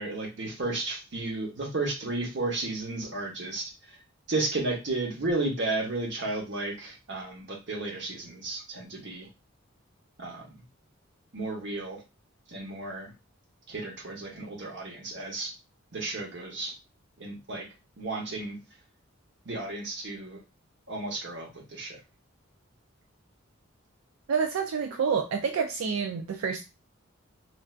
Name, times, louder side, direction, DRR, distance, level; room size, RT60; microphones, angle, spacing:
voice 1, 0.0-4.0 4.3-9.3 10.2-10.5 11.3-12.0 12.5-13.1 13.7-15.5 15.9-16.7 17.2-17.7 18.0-18.6 19.4-20.4 20.9-22.0, right 2 dB, 60° right, 0 dB, 1.0 m, -33 dB
voice 2, 24.3-26.6, right 6 dB, 90° right, 4 dB, 0.4 m, -28 dB
3.3 x 2.5 x 2.4 m, 0.28 s
head